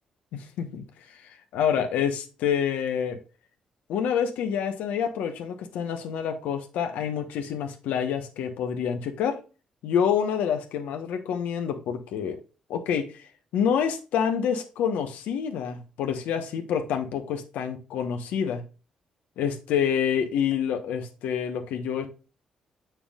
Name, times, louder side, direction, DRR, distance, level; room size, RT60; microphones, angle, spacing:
voice 1, 0.3-0.8 1.5-3.2 3.9-9.4 9.8-12.4 12.7-13.3 13.5-18.6 19.4-22.1, left 8 dB, 85° left, 1.0 m, -27 dB
7.1 x 5.9 x 2.4 m
supercardioid pair, 65°, 3 cm